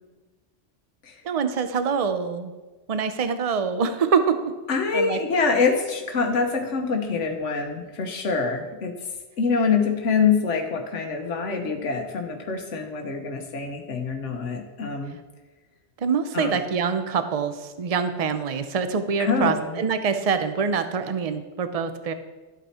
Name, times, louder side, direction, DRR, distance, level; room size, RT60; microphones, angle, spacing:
voice 1, 1.2-2.5 2.9-4.5 4.9-5.2 16.0-22.1, right 6 dB, 35° right, 9 dB, 0.7 m, -25 dB
voice 2, 4.7-9.0 9.4-15.2 16.3-16.6 19.2-19.8, left 5 dB, 85° left, 3 dB, 1.3 m, -25 dB
12.5 x 8.3 x 4.3 m, 1.2 s
omnidirectional pair, 1.2 m